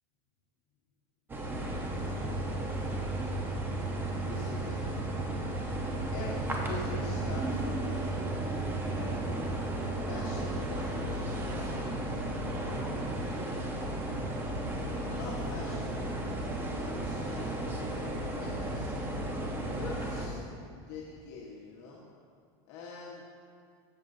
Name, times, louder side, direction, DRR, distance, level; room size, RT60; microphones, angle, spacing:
sound 1, 1.3-20.3, right 1 dB, 15° right, 1.0 m, -34 dB
voice 1, 1.9-3.2 4.2-5.1 6.1-9.2 10.1-12.0 12.6-13.8 14.8-16.0 16.4-19.0 19.7-20.4 20.9-22.0 22.6-23.2, left 4 dB, 60° left, -4 dB, 1.4 m, -46 dB
14.0 x 7.7 x 2.8 m, 2.2 s
supercardioid pair, 140°, 13 cm